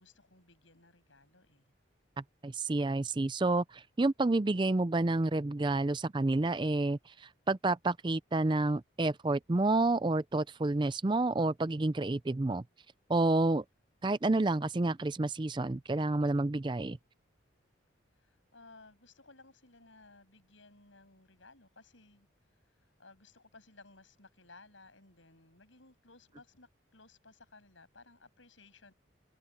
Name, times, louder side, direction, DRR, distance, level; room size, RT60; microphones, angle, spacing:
voice 1, 0.0-1.7 18.1-22.3 22.8-28.9, left 3 dB, 80° left, 6.9 m, -58 dB
voice 2, 2.4-12.6 13.1-13.6 14.0-17.0, right 2 dB, 25° right, 0.4 m, -29 dB
head